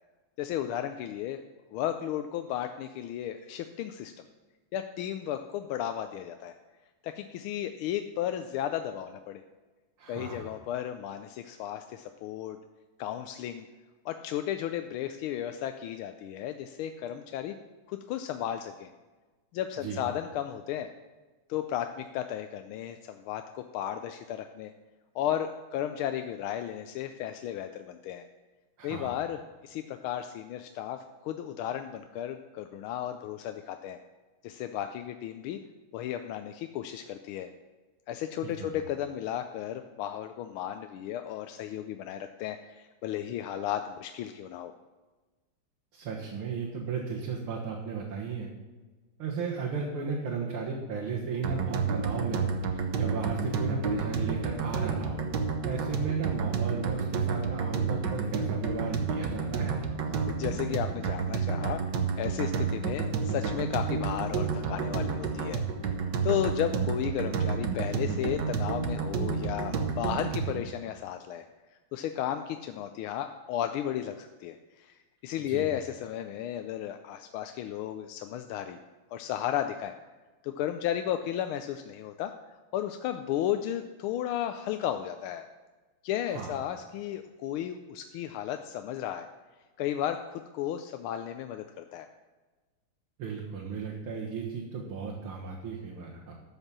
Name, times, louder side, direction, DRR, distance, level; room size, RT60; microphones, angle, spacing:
voice 1, 0.4-1.4 1.7-4.1 4.7-6.5 7.0-9.4 10.1-12.6 13.0-13.7 14.0-17.6 17.9-18.9 19.5-20.9 21.5-24.7 25.1-28.3 28.8-34.0 34.4-35.6 35.9-37.5 38.1-44.7 60.3-65.6 66.2-71.4 71.9-78.8 79.1-79.9 80.4-85.5 86.0-89.3 89.8-92.1, left 11 dB, 80° left, 7 dB, 1.4 m, -34 dB
voice 2, 10.0-10.5 19.8-20.0 28.8-29.2 38.4-38.8 45.9-48.5 49.2-52.6 53.0-55.3 55.6-59.8 75.5-75.7 86.3-86.6 93.2-96.3, right 5 dB, 75° right, -3 dB, 2.3 m, -35 dB
sound 1, 51.4-70.6, right 5 dB, 60° right, 1.5 m, -30 dB
13.0 x 5.4 x 7.3 m, 1.3 s
omnidirectional pair, 2.3 m